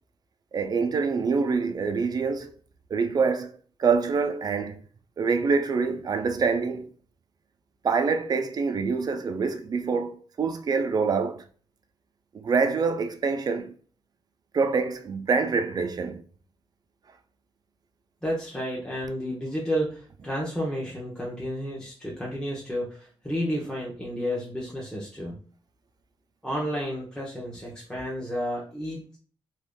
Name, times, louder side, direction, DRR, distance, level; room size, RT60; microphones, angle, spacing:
voice 1, 0.5-2.5 2.9-3.5 3.8-4.8 5.2-6.9 7.8-11.4 12.3-13.7 14.5-16.2, right 5 dB, 40° right, 0.4 m, -25 dB
voice 2, 18.2-25.4 26.4-29.2, equal, 5° left, 0.7 m, -31 dB
2.9 x 2.6 x 3.5 m
wide cardioid pair, 140°, 10 cm